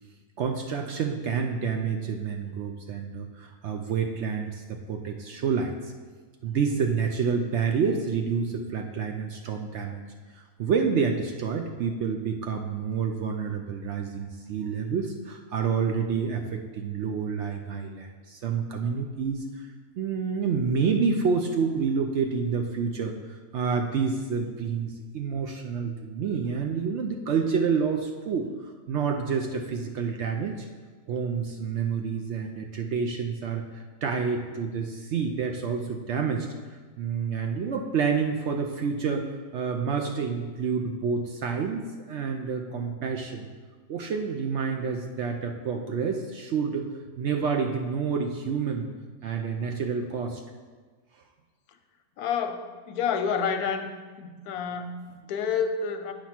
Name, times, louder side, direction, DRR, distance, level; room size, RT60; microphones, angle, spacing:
voice 1, 0.4-5.9 6.4-10.0 10.3-19.7 20.0-30.7 31.1-36.5 37.0-41.8 42.1-43.5 43.9-46.9 47.2-48.9 49.2-50.4, right 5 dB, 65° right, 3 dB, 0.7 m, -28 dB
voice 2, 52.2-53.9 54.2-56.1, left 6 dB, 90° left, 7 dB, 1.1 m, -29 dB
8.6 x 3.0 x 5.8 m, 1.4 s
omnidirectional pair, 1.6 m